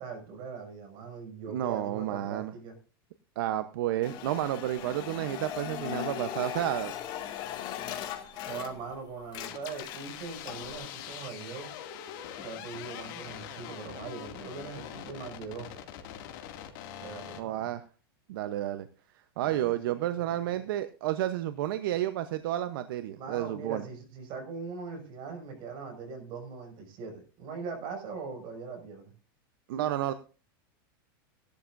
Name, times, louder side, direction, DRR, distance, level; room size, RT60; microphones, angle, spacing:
voice 1, 0.0-2.8 8.3-11.7 12.4-15.7 17.0-17.7 19.4-19.8 20.0-20.6 23.2-29.1, right 5 dB, 40° right, 3 dB, 6.0 m, -41 dB
voice 2, 1.5-2.5 3.4-6.9 17.4-17.8 18.3-18.9 19.4-23.8 29.7-30.1, right 13 dB, 70° right, 11 dB, 0.9 m, -31 dB
sound 1, 4.0-9.0 9.2-10.8, left 11 dB, 40° left, 2.2 m, -39 dB
sound 2, 9.4-17.4, left 10 dB, 55° left, 2.4 m, -43 dB
17.0 x 12.0 x 2.6 m, 0.36 s
supercardioid pair, 145°, 12 cm